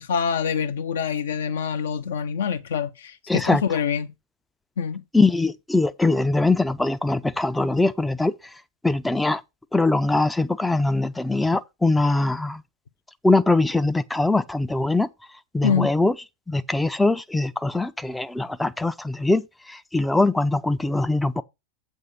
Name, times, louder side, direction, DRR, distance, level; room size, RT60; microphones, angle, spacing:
voice 1, 0.0-4.1 4.8-5.0 15.6-15.9, left 7 dB, 60° left, 0.8 m, -25 dB
voice 2, 3.3-3.6 5.1-8.3 8.8-9.4 9.7-12.6 13.2-15.1 15.5-16.1 16.5-21.4, left 2 dB, 5° left, 0.5 m, -22 dB
8.0 x 5.3 x 5.2 m
figure-of-eight pair, 90°, 0 cm